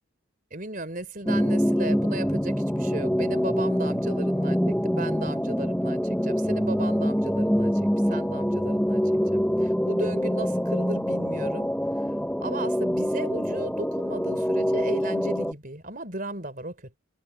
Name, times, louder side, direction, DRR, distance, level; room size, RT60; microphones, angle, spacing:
voice 1, 0.5-11.7 12.4-17.0, right 2 dB, 40° right, 4.4 m, -36 dB
sound 1, 1.3-15.5, equal, 5° left, 1.3 m, -25 dB
head